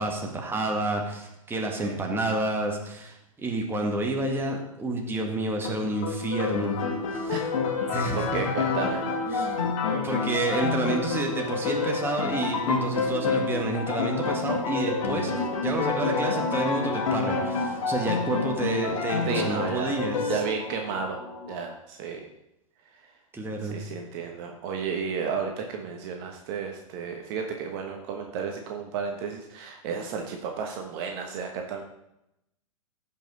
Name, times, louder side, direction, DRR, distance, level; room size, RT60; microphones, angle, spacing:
voice 1, 0.0-6.8 7.1-7.3 7.9-8.4 9.3-20.4 23.3-23.8, right 2 dB, 10° right, 1 dB, 1.8 m, -29 dB
sound 1, 5.6-21.6, left 3 dB, 40° left, 3.0 m, -34 dB
sound 2, 6.3-20.4, left 5 dB, 65° left, 1.6 m, -30 dB
voice 2, 7.9-9.0 19.3-20.0 20.3-22.2 23.6-31.8, right 6 dB, 45° right, 3 dB, 1.2 m, -33 dB
15.0 x 5.7 x 4.0 m, 0.84 s
figure-of-eight pair, 105°, 18 cm